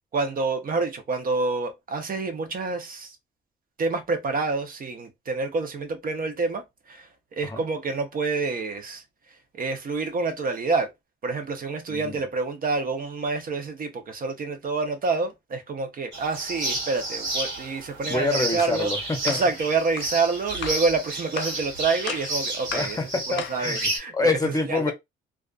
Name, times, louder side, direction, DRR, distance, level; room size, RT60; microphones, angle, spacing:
voice 1, 0.1-3.2 3.8-9.0 9.5-10.9 11.2-18.9 19.2-23.0 23.3-24.9, right 4 dB, 45° right, 0.7 m, -27 dB
voice 2, 11.9-12.2 18.0-19.4 22.7-24.9, left 3 dB, 20° left, 0.7 m, -27 dB
sound 1, 16.1-24.0, right 2 dB, 70° right, 1.3 m, -31 dB
sound 2, 18.6-18.8 19.3-19.5 20.0-20.1 20.6-20.9 21.4-21.6 22.1-22.3 22.7-23.0 23.4-23.7, left 10 dB, 60° left, 0.4 m, -35 dB
2.4 x 2.3 x 2.3 m
cardioid pair, 90°, 20 cm